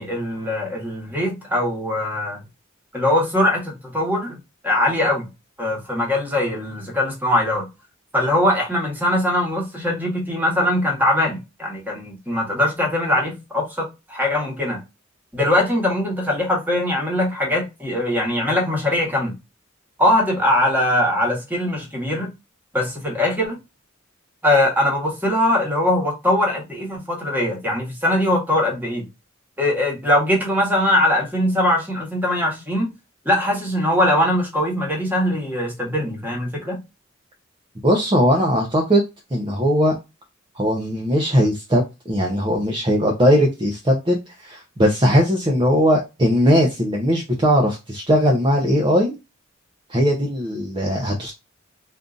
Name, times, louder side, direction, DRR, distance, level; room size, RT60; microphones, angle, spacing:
voice 1, 0.0-2.4 2.9-4.4 4.6-5.3 5.6-7.7 8.1-14.8 15.3-19.3 20.0-22.3 22.7-23.6 24.4-29.1 29.6-32.9 33.2-36.8, left 1 dB, 10° right, 1.3 m, -21 dB
voice 2, 37.8-39.0 39.3-40.0 40.6-49.2 49.9-51.3, equal, 25° right, 0.6 m, -19 dB
3.7 x 2.7 x 2.4 m
head